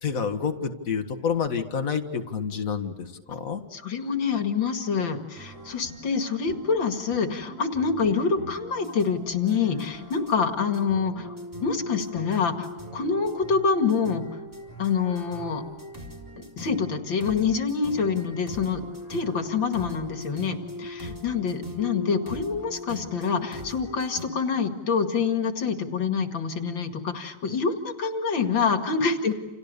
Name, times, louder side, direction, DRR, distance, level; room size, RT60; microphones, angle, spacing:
voice 1, 0.0-3.6, left 6 dB, 45° left, 6 dB, 2.2 m, -28 dB
voice 2, 3.7-11.3 11.6-12.7 12.9-14.2 14.8-15.6 16.6-18.8 19.1-29.3, left 5 dB, 75° left, 6 dB, 2.9 m, -26 dB
sound 1, 5.4-24.3, left 1 dB, 10° right, 4.2 m, -40 dB
30.0 x 29.0 x 6.8 m, 1.1 s
omnidirectional pair, 2.1 m